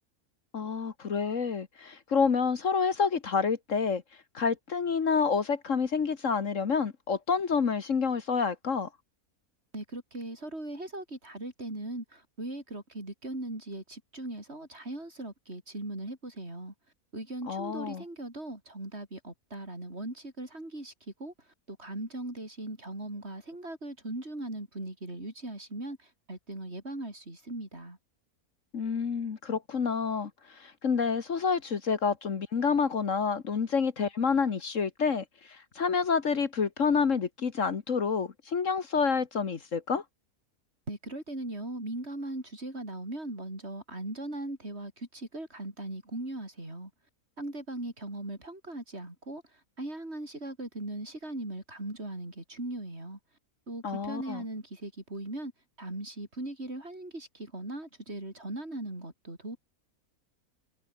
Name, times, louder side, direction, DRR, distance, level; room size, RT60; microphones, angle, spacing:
voice 1, 0.5-4.0 4.3-8.9 17.5-18.0 28.7-40.0 53.8-54.4, left 5 dB, 60° left, 1.7 m, -28 dB
voice 2, 9.7-16.7 17.1-20.9 21.2-21.3 21.7-28.0 40.9-46.9 47.4-53.2 53.7-55.5 55.8-59.6, right 1 dB, 45° right, 6.3 m, -39 dB
omnidirectional pair, 1.6 m